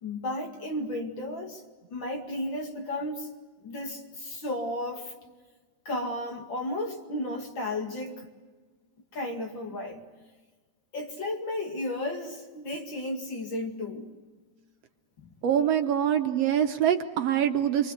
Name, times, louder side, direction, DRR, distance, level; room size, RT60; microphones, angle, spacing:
voice 1, 0.0-1.6 1.9-3.3 3.6-5.1 5.9-8.3 9.1-10.1 10.9-14.1 15.2-15.3, left 1 dB, 45° left, 3 dB, 2.6 m, -33 dB
voice 2, 15.4-17.9, right 9 dB, 65° right, 6 dB, 2.0 m, -24 dB
26.5 x 24.0 x 8.1 m, 1.4 s
omnidirectional pair, 3.3 m